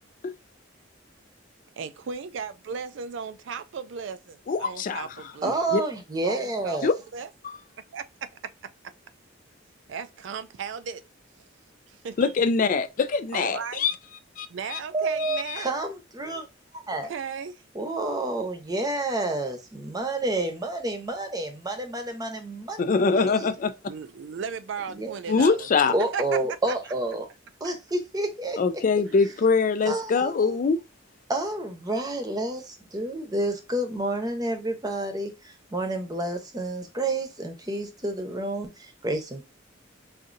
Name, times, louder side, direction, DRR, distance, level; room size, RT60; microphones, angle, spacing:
voice 1, 1.8-5.5 6.3-6.8 7.1-7.3 7.9-8.3 9.9-11.0 11.9-12.3 13.3-13.9 14.5-15.7 17.0-17.6 23.1-23.4 23.9-26.2, right 6 dB, 70° right, 0.4 m, -36 dB
voice 2, 4.5-5.1 5.7-5.8 6.8-6.9 12.2-13.9 14.4-14.8 15.2-15.7 22.8-23.7 25.3-25.9 28.6-30.8, left 4 dB, 45° left, 0.4 m, -23 dB
voice 3, 5.4-6.9 14.9-16.4 16.9-17.1 17.7-23.5 24.9-25.1 25.9-27.2 27.6-28.6 29.9-30.6 31.3-32.6 32.9-35.3 35.7-38.7 39.0-39.4, right 2 dB, 20° right, 0.8 m, -29 dB
5.0 x 2.6 x 2.6 m
head